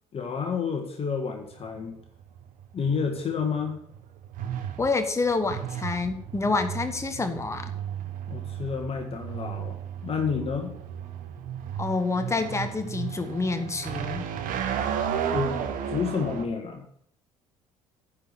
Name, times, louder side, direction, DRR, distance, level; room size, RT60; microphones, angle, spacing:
voice 1, 0.1-2.0 2.7-3.8 8.3-10.8 15.3-15.6 15.9-16.8, left 6 dB, 35° left, 3 dB, 1.7 m, -30 dB
sound 1, 1.4-16.4, right 8 dB, 50° right, 1.2 m, -34 dB
voice 2, 4.8-7.7 11.8-14.3, left 3 dB, 15° left, 7 dB, 1.2 m, -28 dB
9.9 x 5.0 x 8.2 m, 0.67 s
figure-of-eight pair, 55°, 17 cm